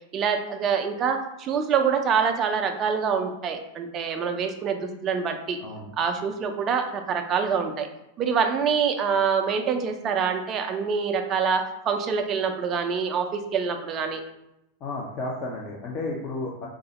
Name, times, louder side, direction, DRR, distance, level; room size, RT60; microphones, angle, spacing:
voice 1, 0.1-5.6 6.0-7.9 8.2-14.2, right 6 dB, 30° right, 5 dB, 0.4 m, -25 dB
voice 2, 14.8-16.7, left 2 dB, 35° left, -2 dB, 0.5 m, -32 dB
3.5 x 2.0 x 3.0 m, 0.85 s
figure-of-eight pair, 90°, 0 cm